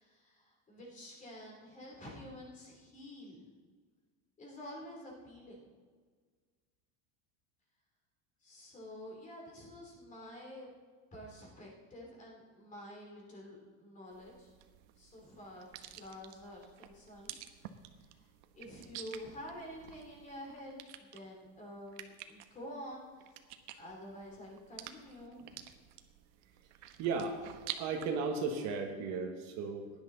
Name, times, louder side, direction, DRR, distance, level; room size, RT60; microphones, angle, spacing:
voice 1, 0.0-3.4 4.4-5.7 8.4-10.7 11.1-14.5 15.0-17.4 18.1-18.3 18.5-23.3 23.8-25.6, equal, 20° left, -1 dB, 3.1 m, -49 dB
sound 1, 14.1-28.1, right 12 dB, 75° right, 1.1 m, -50 dB
voice 2, 27.0-27.4 27.8-29.9, right 4 dB, 45° right, 4 dB, 1.3 m, -35 dB
16.5 x 10.5 x 3.9 m, 1.5 s
cardioid pair, 170°, 37 cm